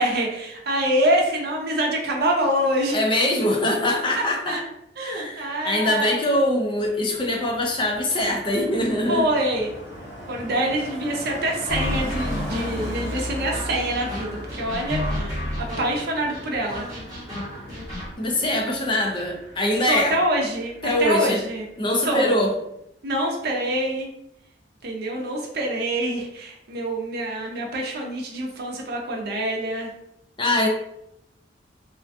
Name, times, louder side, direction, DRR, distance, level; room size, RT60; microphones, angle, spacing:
voice 1, 0.0-3.0 3.9-4.6 5.0-6.1 9.1-9.7 10.3-16.9 19.9-21.6 22.0-22.3 23.0-24.1 24.8-29.9, right 1 dB, 60° right, 0 dB, 0.6 m, -25 dB
voice 2, 2.9-4.6 5.0-9.3 18.2-20.2 20.8-21.4 21.8-22.5 30.4-30.7, left 1 dB, 30° left, 0 dB, 0.4 m, -23 dB
Car passing by, 6.4-21.2 21.4-21.8, left 1 dB, 80° left, 0.7 m, -38 dB
sound 1, 11.7-18.1, left 1 dB, 20° right, 1.0 m, -31 dB
2.4 x 2.2 x 2.5 m, 0.80 s
head